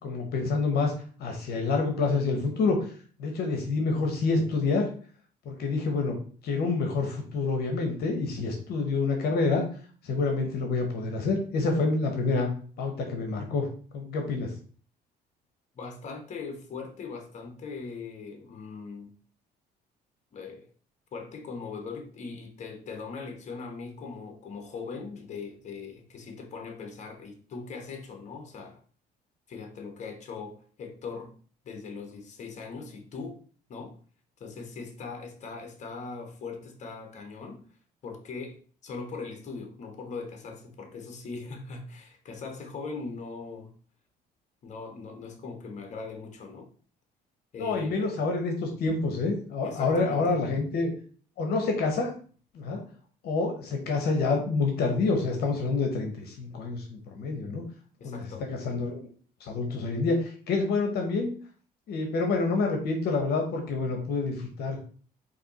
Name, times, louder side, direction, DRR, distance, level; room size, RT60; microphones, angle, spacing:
voice 1, 0.0-0.9 1.2-2.9 3.2-4.9 5.4-6.2 6.4-9.6 10.0-12.5 12.8-13.7 13.9-14.5 47.6-50.9 51.4-52.1 52.5-52.8 53.2-57.6 58.0-59.1 59.4-61.3 61.9-64.8, left 3 dB, 70° left, 3 dB, 0.9 m, -27 dB
voice 2, 15.7-19.1 20.3-20.7 21.1-28.8 29.5-31.3 31.6-33.4 33.7-34.0 34.4-37.6 38.0-43.7 44.6-46.7 47.5-48.2 49.6-50.4 58.0-58.5, left 4 dB, 45° left, 4 dB, 1.1 m, -40 dB
4.2 x 2.8 x 4.0 m, 0.43 s
cardioid pair, 110°, 17 cm